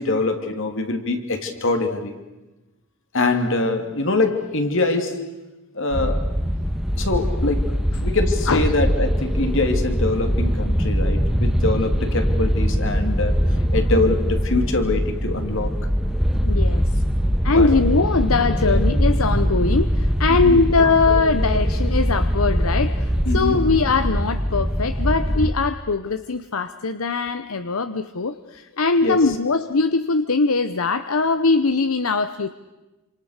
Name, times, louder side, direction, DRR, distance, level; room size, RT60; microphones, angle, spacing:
voice 1, 0.0-2.1 3.1-5.3 5.7-6.2 7.0-7.7 8.0-13.4 13.7-15.7 17.5-17.7 18.6-18.8 20.3-20.6 23.2-23.6 29.0-29.2, left 2 dB, 65° left, 6 dB, 2.8 m, -24 dB
sound 1, 5.9-25.5, equal, ahead, 1.5 m, -22 dB
voice 2, 8.5-8.8 16.3-17.0 17.4-32.5, left 4 dB, 85° left, 11 dB, 0.9 m, -21 dB
27.5 x 26.5 x 6.6 m, 1.1 s
head